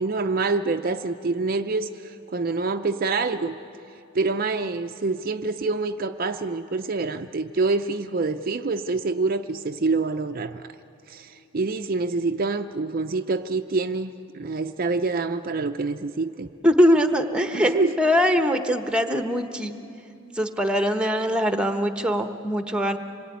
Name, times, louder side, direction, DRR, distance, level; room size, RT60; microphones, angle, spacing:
voice 1, 0.0-3.6 4.1-10.6 11.1-16.5 17.5-18.0, right 3 dB, 45° right, 7 dB, 0.6 m, -26 dB
voice 2, 16.6-19.8 20.3-23.0, equal, 5° right, 6 dB, 1.1 m, -22 dB
26.0 x 22.5 x 9.4 m, 2.6 s
head